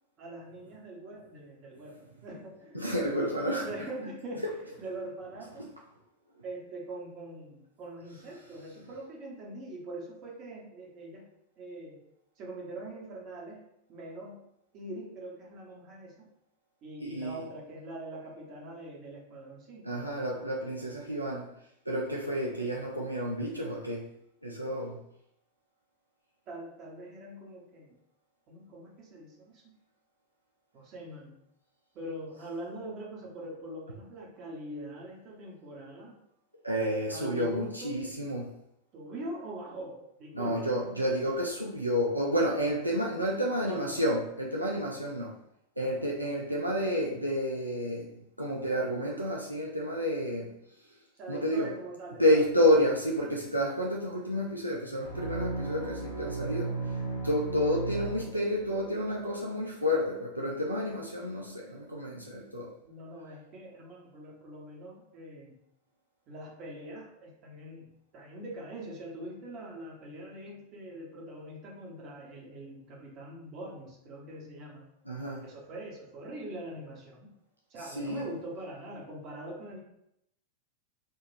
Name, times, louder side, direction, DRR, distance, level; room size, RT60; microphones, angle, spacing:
voice 1, 0.2-3.4 3.6-5.7 6.4-11.3 11.6-12.0 12.4-13.6 13.9-14.5 14.7-16.3 16.8-20.4 26.5-28.0 28.5-29.7 30.7-31.3 31.9-36.2 37.1-38.0 38.9-40.8 43.6-44.0 45.8-46.0 51.1-52.4 62.8-65.6 66.3-74.9 75.4-77.3 77.7-79.8, right 1 dB, 35° right, -3 dB, 1.1 m, -43 dB
voice 2, 2.7-3.7 5.6-5.7 17.0-17.4 19.8-21.5 21.9-24.0 24.4-25.0 36.6-38.5 40.3-45.4 45.8-50.5 51.3-51.7 52.2-56.9 57.2-62.7 75.1-75.5 77.8-78.3, equal, 90° right, -2 dB, 0.4 m, -30 dB
sound 1, 55.0-58.9, right 3 dB, 80° left, 1.3 m, -35 dB
3.8 x 2.4 x 2.5 m, 0.77 s
figure-of-eight pair, 90°, 0 cm